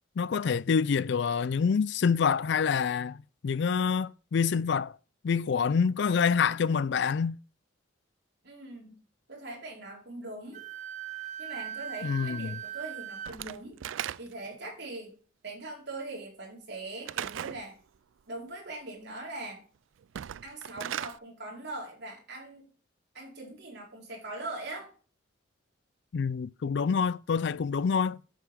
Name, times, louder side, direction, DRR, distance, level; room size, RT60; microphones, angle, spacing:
voice 1, 0.2-3.2 3.4-4.9 5.2-7.3 12.0-12.6 26.1-28.2, left 6 dB, 60° left, 0.4 m, -26 dB
voice 2, 8.4-9.0 9.3-10.6 11.4-13.8 14.2-15.2 15.4-17.8 18.3-19.6 20.4-22.7 23.1-24.9, right 2 dB, 55° right, 4.3 m, -41 dB
Wind instrument woodwind instrument, 10.5-13.3, right 10 dB, 40° right, 0.9 m, -39 dB
Slam / Wood, 13.3-14.6 17.1-17.6 20.0-21.2, right 10 dB, 75° right, 0.4 m, -37 dB
10.5 x 7.6 x 3.5 m
head